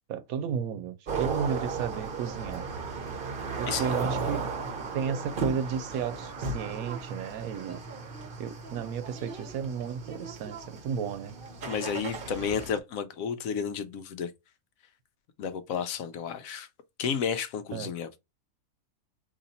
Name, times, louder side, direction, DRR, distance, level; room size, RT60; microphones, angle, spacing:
voice 1, 0.1-2.7 3.6-4.4 4.9-7.8 8.4-11.3 17.7-17.9, right 7 dB, 80° right, 1.1 m, -33 dB
sound 1, 1.1-12.8, right 4 dB, 45° right, 0.9 m, -35 dB
voice 2, 11.7-14.3 15.4-16.7 17.0-18.2, left 7 dB, 75° left, 1.0 m, -32 dB
4.0 x 2.8 x 4.0 m
omnidirectional pair, 1.5 m